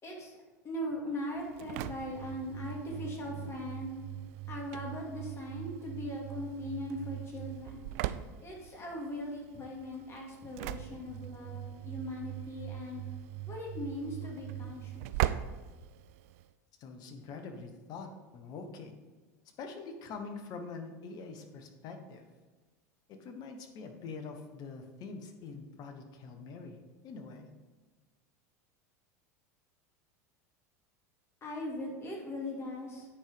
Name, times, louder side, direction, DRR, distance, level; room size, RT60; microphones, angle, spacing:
voice 1, 0.0-0.4 0.6-4.0 4.5-7.8 8.4-13.0 13.5-14.9 31.4-33.1, left 1 dB, 30° left, -1 dB, 2.6 m, -39 dB
Engine / Slam, 1.3-16.5, right 13 dB, 65° right, 0.4 m, -40 dB
voice 2, 16.8-19.0 19.6-22.3 23.1-26.8 27.0-27.5, left 4 dB, 50° left, 6 dB, 1.3 m, -44 dB
8.9 x 4.7 x 5.2 m, 1.3 s
hypercardioid pair, 85°, 9 cm